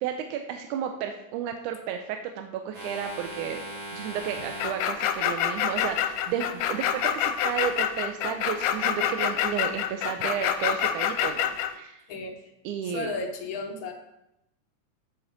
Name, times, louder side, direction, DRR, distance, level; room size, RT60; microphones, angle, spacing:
voice 1, 0.0-3.6 3.9-12.0 12.6-13.1, right 8 dB, 85° right, 5 dB, 2.0 m, -32 dB
sound 1, 2.7-7.9, right 1 dB, 45° right, 2.7 m, -42 dB
sound 2, 4.6-11.7, left 10 dB, 85° left, 2.0 m, -26 dB
voice 2, 12.1-12.4 12.8-13.9, left 3 dB, 70° left, 2 dB, 1.2 m, -34 dB
7.4 x 7.0 x 3.9 m, 0.84 s
omnidirectional pair, 3.6 m